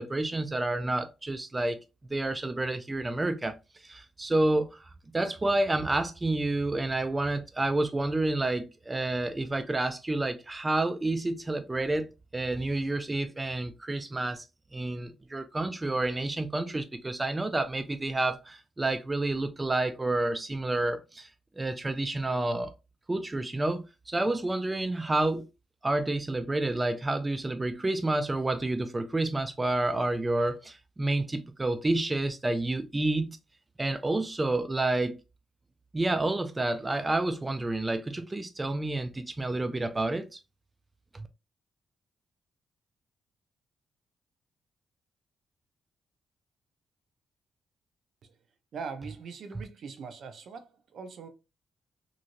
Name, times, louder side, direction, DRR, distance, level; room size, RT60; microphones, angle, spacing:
voice 1, 0.0-1.8 2.1-3.5 3.8-14.4 14.7-21.3 21.6-22.7 23.1-25.5 25.8-33.4 33.8-35.2 35.9-40.4 41.1-41.3, right 2 dB, 20° right, 0.3 m, -29 dB
voice 2, 48.7-51.3, right 5 dB, 65° right, 0.5 m, -41 dB
3.1 x 2.5 x 2.5 m
cardioid pair, 90°, 0 cm